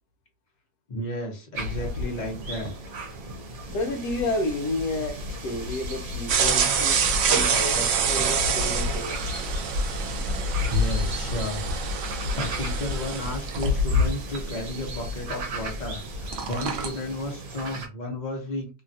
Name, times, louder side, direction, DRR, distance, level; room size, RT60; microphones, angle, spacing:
voice 1, 0.9-2.7 5.5-5.6 10.5-11.6 12.0-18.7, left 1 dB, 35° left, 0.8 m, -33 dB
sound 1, 1.5-17.9, left 2 dB, 65° right, 1.1 m, -32 dB
voice 2, 3.7-9.2, left 2 dB, 75° left, 1.2 m, -31 dB
sound 2, 6.3-15.9 16.1-16.9, right 5 dB, 90° right, 0.6 m, -27 dB
3.0 x 2.3 x 2.6 m
omnidirectional pair, 1.8 m